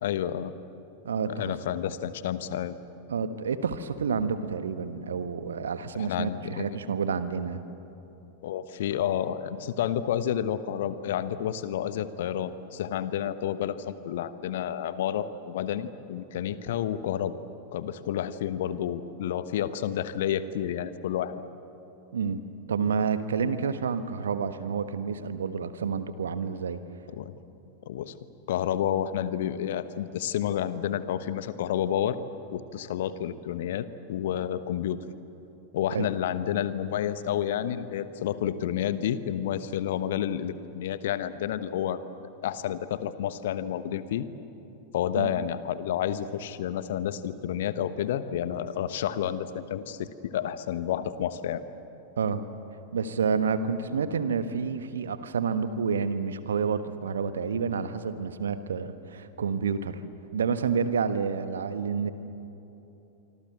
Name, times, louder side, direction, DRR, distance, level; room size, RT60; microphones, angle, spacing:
voice 1, 0.0-0.5 1.3-2.7 5.9-6.8 8.4-17.4 17.7-21.4 27.1-27.3 27.9-28.2 28.5-32.2 32.5-35.0 35.7-42.0 42.4-44.3 44.9-51.6, left 10 dB, 55° left, 13 dB, 1.2 m, -30 dB
voice 2, 1.0-1.5 3.1-7.6 22.1-22.4 22.7-26.8 35.9-36.1 45.2-45.3 52.2-52.4 52.9-60.0 60.3-62.1, right 6 dB, 65° right, 11 dB, 1.3 m, -29 dB
25.5 x 25.5 x 8.0 m, 3.0 s
figure-of-eight pair, 90°, 0 cm